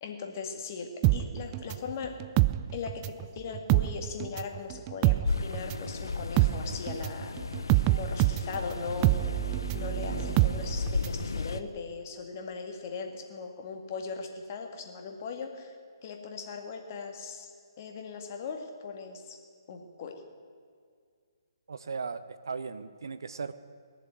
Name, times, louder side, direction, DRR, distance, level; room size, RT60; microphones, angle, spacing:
voice 1, 0.0-2.2 2.7-7.3 7.9-9.1 9.7-15.8 16.0-17.5 17.8-19.4 19.7-20.2, left 5 dB, 40° left, 4 dB, 2.0 m, -39 dB
sound 1, 1.0-3.3 3.5-11.2 11.5-11.6, right 19 dB, 25° right, 0.4 m, -26 dB
sound 2, 5.3-11.6, left 4 dB, 75° left, 0.7 m, -35 dB
voice 2, 21.7-23.5, right 5 dB, 65° right, 13 dB, 0.8 m, -37 dB
20.5 x 7.4 x 9.2 m, 2.1 s
figure-of-eight pair, 140°, 2 cm